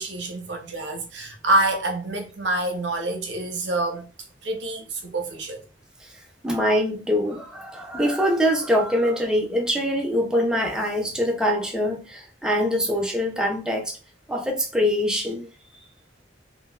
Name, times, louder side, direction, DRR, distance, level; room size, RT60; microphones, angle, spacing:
voice 1, 0.0-4.1 4.4-5.6, right 2 dB, 75° right, 0.7 m, -26 dB
voice 2, 6.4-14.0 14.3-15.5, equal, 5° right, 0.4 m, -24 dB
3.7 x 2.1 x 2.3 m
head